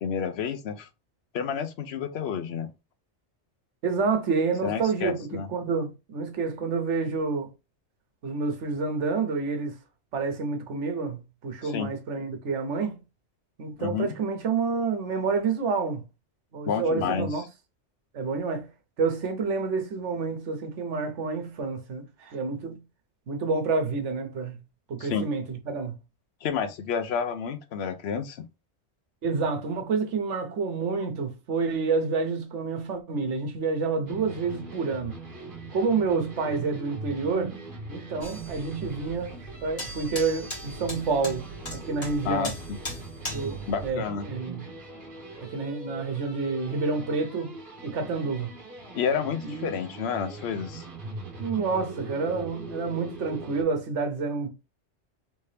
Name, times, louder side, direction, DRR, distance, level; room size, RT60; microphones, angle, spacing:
voice 1, 0.0-0.9 1.3-2.7 4.6-5.5 11.6-11.9 13.8-14.1 16.7-17.5 25.0-25.3 26.4-28.5 42.2-42.5 43.7-44.3 48.9-50.9, left 6 dB, 70° left, 0.8 m, -30 dB
voice 2, 3.8-7.5 8.2-9.7 10.1-13.0 13.6-16.0 16.5-17.4 18.1-18.7 19.0-22.8 23.3-24.5 24.9-26.0 29.2-35.1 35.7-37.6 37.9-41.4 41.7-42.5 43.3-44.6 45.5-47.6 47.8-48.5 49.4-49.7 51.4-54.5, right 4 dB, 90° right, 1.2 m, -28 dB
sound 1, 34.1-53.6, right 3 dB, 50° right, 1.3 m, -41 dB
sound 2, 38.2-43.9, equal, 40° left, 1.7 m, -39 dB
3.3 x 2.8 x 3.2 m
omnidirectional pair, 1.2 m